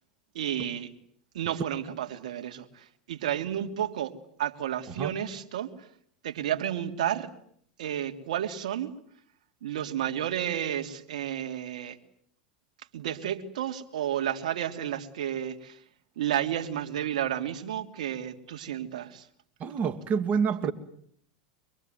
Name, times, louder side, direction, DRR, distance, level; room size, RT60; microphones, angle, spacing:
voice 1, 0.3-0.9 1.3-4.1 4.4-5.7 6.2-7.3 7.8-8.9 9.6-12.0 12.9-15.8 16.2-19.3, right 10 dB, 80° right, 3.1 m, -31 dB
voice 2, 19.6-20.7, right 6 dB, 35° right, 2.4 m, -27 dB
26.0 x 23.0 x 9.4 m
hypercardioid pair, 105°, 4 cm